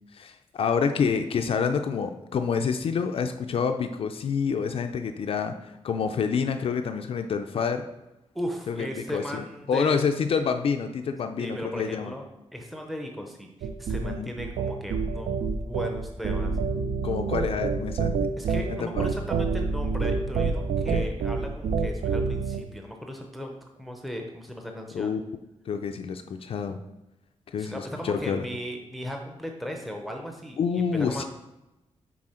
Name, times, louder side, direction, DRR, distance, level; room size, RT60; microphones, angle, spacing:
voice 1, 0.1-7.9 8.7-12.1 14.0-14.3 16.4-16.8 17.0-18.2 18.7-19.1 20.9-21.1 24.9-25.2 25.7-26.8 27.5-28.5 30.6-31.2, left 6 dB, 60° left, 6 dB, 0.4 m, -28 dB
voice 2, 8.3-10.0 11.4-12.2 12.5-16.5 18.4-25.2 27.6-31.2, equal, ahead, 2 dB, 0.6 m, -37 dB
sound 1, 13.6-22.6, right 4 dB, 75° right, 0.4 m, -27 dB
6.2 x 4.1 x 4.3 m, 0.95 s
wide cardioid pair, 160°, 11 cm